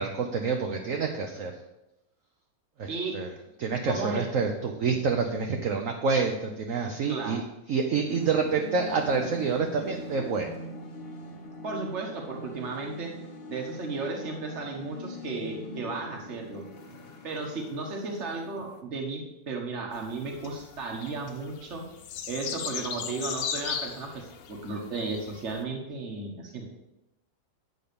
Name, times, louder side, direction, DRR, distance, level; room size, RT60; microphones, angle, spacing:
voice 1, 0.0-1.5 2.8-3.3 3.6-7.4 7.7-10.5, right 5 dB, 60° right, 3 dB, 0.9 m, -28 dB
voice 2, 3.9-4.3 7.1-7.4 11.6-13.1 13.5-16.6 17.2-21.8 22.3-26.6, right 3 dB, 40° right, 1 dB, 1.5 m, -34 dB
sound 1, 8.1-18.8, left 2 dB, 45° left, 0.8 m, -42 dB
sound 2, 19.9-25.6, left 8 dB, 75° left, 1.3 m, -37 dB
8.9 x 3.9 x 6.8 m, 0.92 s
omnidirectional pair, 2.0 m